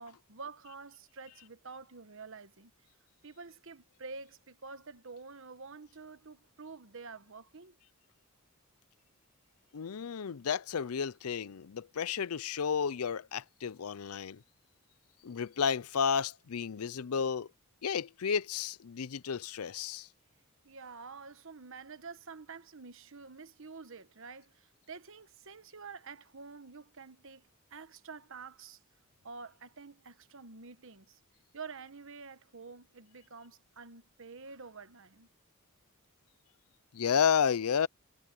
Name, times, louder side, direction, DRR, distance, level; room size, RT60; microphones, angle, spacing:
voice 1, 0.0-2.7 3.2-7.8 20.6-28.8 29.2-31.2 31.5-35.3, right 4 dB, 60° right, 1.2 m, -48 dB
voice 2, 9.7-14.4 15.2-17.5 17.8-20.1 36.9-37.9, left 7 dB, 80° left, 0.5 m, -32 dB
head